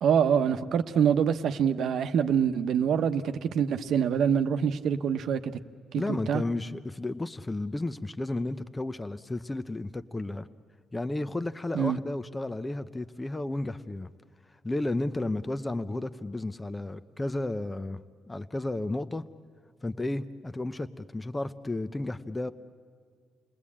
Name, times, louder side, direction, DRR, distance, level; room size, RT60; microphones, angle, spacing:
voice 1, 0.0-5.5 5.9-6.4 11.7-12.0, right 8 dB, 70° right, 9 dB, 1.0 m, -25 dB
voice 2, 6.0-10.5 10.9-14.1 14.6-19.2 19.8-22.5, left 2 dB, 15° left, 11 dB, 0.8 m, -33 dB
29.0 x 19.5 x 8.6 m, 2.1 s
cardioid pair, 90°, 0 cm